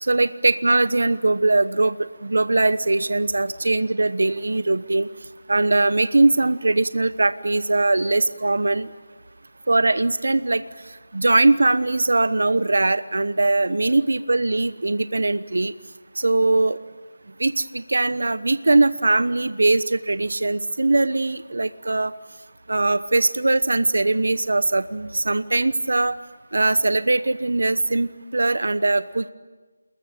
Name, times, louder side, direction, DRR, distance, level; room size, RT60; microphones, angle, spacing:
voice 1, 0.0-5.1 5.5-8.9 9.7-10.6 11.1-15.7 16.2-16.8 17.4-22.1 22.7-26.2 26.5-29.3, right 2 dB, 75° right, 14 dB, 1.0 m, -21 dB
29.0 x 21.5 x 9.0 m, 1.3 s
figure-of-eight pair, 165°, 0 cm